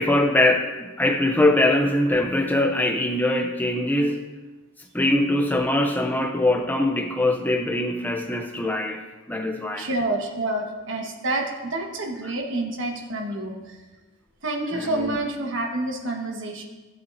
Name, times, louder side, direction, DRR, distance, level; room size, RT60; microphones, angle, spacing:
voice 1, 0.0-4.2 4.9-9.0 9.3-9.9 14.7-15.2, left 1 dB, 10° left, 3 dB, 0.5 m, -22 dB
voice 2, 9.8-13.8 14.4-16.6, right 2 dB, 65° right, 1 dB, 1.4 m, -28 dB
15.0 x 8.3 x 2.7 m, 1.2 s
head